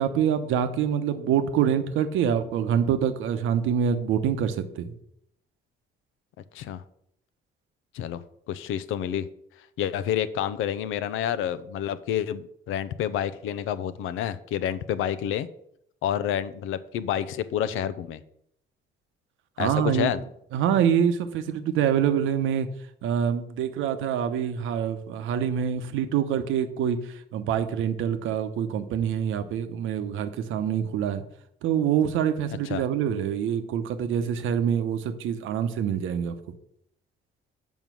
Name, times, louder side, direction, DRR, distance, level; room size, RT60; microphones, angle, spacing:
voice 1, 0.0-4.9 19.6-20.1 20.5-22.7 23.0-27.0 27.3-31.2 31.6-36.3, right 8 dB, 90° right, 9 dB, 0.9 m, -25 dB
voice 2, 7.9-9.3 9.8-15.5 16.0-18.2 19.6-20.2 32.6-32.8, left 10 dB, 90° left, 15 dB, 0.6 m, -29 dB
7.3 x 5.4 x 6.1 m, 0.72 s
cardioid pair, 90°, 20 cm